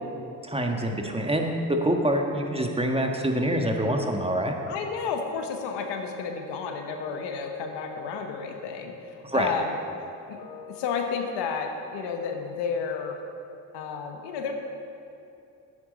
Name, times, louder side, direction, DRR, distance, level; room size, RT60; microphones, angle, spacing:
voice 1, 0.4-1.5 1.8-4.6 9.3-9.5, right 1 dB, 15° right, 2 dB, 1.4 m, -25 dB
voice 2, 4.7-9.8 10.3-13.2 13.7-14.5, left 5 dB, 80° left, 4 dB, 1.1 m, -32 dB
10.0 x 8.7 x 5.1 m, 2.7 s
supercardioid pair, 55°, 41 cm